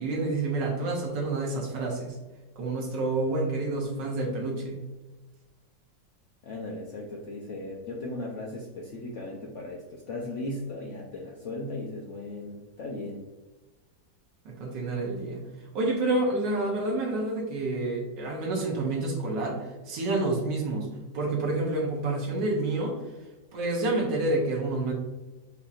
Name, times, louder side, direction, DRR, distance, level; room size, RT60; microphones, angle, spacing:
voice 1, 0.0-2.2 2.6-4.7 14.4-15.5 15.7-23.0 23.5-24.9, right 2 dB, 85° right, -1 dB, 1.5 m, -28 dB
voice 2, 6.4-13.2, left 2 dB, 70° left, -1 dB, 0.7 m, -37 dB
5.5 x 2.8 x 2.4 m, 1.2 s
omnidirectional pair, 1.9 m